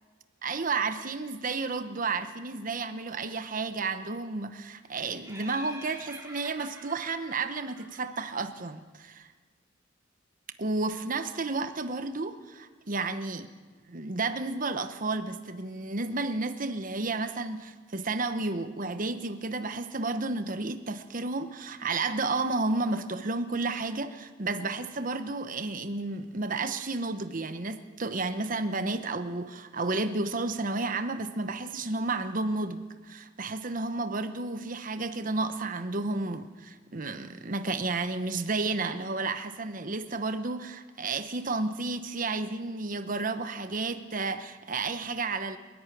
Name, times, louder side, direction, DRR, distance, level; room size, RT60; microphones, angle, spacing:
voice 1, 0.4-9.3 10.6-13.5 13.9-45.6, right 3 dB, 45° right, 10 dB, 1.0 m, -32 dB
Laughter, 5.2-8.6, right 1 dB, 15° right, 3.9 m, -47 dB
29.0 x 11.5 x 9.2 m, 1.4 s
head